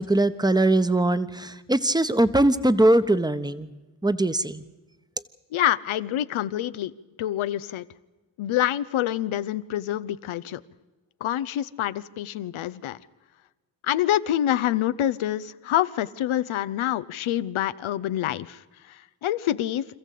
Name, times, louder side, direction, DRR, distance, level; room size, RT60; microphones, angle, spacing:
voice 1, 0.0-3.7 4.0-4.6, right 1 dB, 10° right, 12 dB, 1.2 m, -21 dB
voice 2, 5.5-6.9 7.2-7.8 8.4-10.6 11.2-13.0 13.8-18.6 18.9-19.9, left 12 dB, 75° left, 14 dB, 0.9 m, -26 dB
27.0 x 14.5 x 8.4 m, 1.2 s
supercardioid pair, 60°, 48 cm